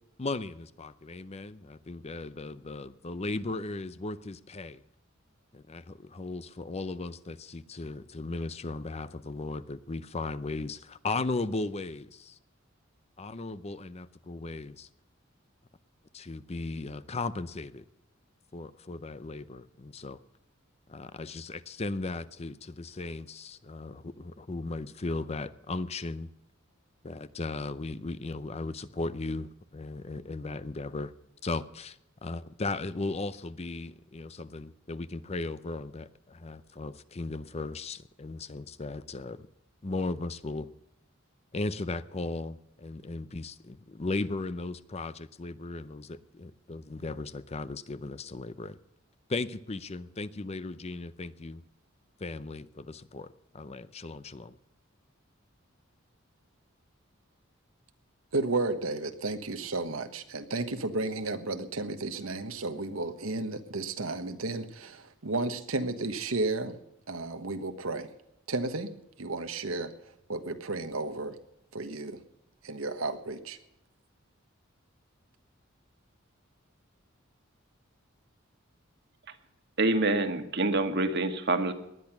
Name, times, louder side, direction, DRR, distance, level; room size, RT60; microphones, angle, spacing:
voice 1, 0.2-4.8 5.5-12.4 13.2-14.9 16.1-17.8 18.5-20.2 20.9-26.3 27.0-31.1 31.4-39.5 39.8-40.7 41.5-48.8 49.3-51.6 52.2-54.6, left 3 dB, 30° left, 15 dB, 0.6 m, -36 dB
voice 2, 58.3-66.8 67.1-68.1 68.5-68.9 69.2-71.4 71.7-72.2 72.6-73.6, right 2 dB, 80° right, 8 dB, 1.4 m, -33 dB
voice 3, 79.8-81.7, right 2 dB, 55° right, 8 dB, 1.7 m, -26 dB
19.0 x 11.0 x 6.0 m, 0.85 s
head